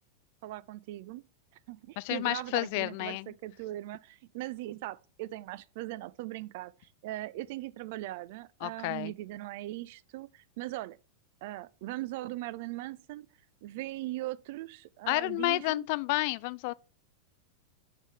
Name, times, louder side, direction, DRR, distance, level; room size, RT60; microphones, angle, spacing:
voice 1, 0.4-1.2 1.7-11.0 11.4-13.3 13.6-15.9, right 16 dB, 50° right, 0.4 m, -39 dB
voice 2, 2.0-3.3 8.6-9.1 15.1-16.7, left 22 dB, 45° left, 0.3 m, -30 dB
6.2 x 4.0 x 4.9 m
figure-of-eight pair, 90°, 0 cm